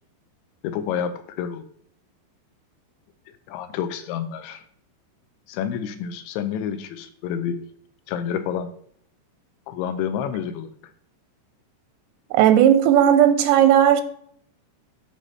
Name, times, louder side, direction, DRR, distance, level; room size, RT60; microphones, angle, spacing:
voice 1, 0.6-1.7 3.5-4.6 5.5-7.6 8.1-8.7 9.7-10.7, left 8 dB, 85° left, 2.9 m, -29 dB
voice 2, 12.3-14.0, right 10 dB, 90° right, 2.9 m, -15 dB
11.5 x 5.2 x 3.2 m
omnidirectional pair, 5.1 m